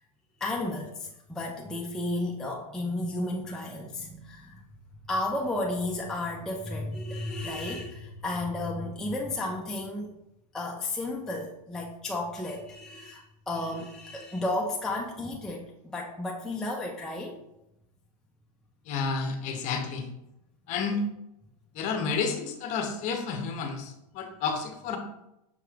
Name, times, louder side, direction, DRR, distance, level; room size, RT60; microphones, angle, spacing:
voice 1, 0.4-4.6 5.0-10.1 10.5-17.4, left 2 dB, 5° left, -2 dB, 0.3 m, -33 dB
voice 2, 18.9-20.1 20.7-21.0 21.7-25.0, left 5 dB, 35° left, 5 dB, 0.7 m, -31 dB
5.8 x 3.0 x 2.4 m, 0.86 s
hypercardioid pair, 130°, 20 cm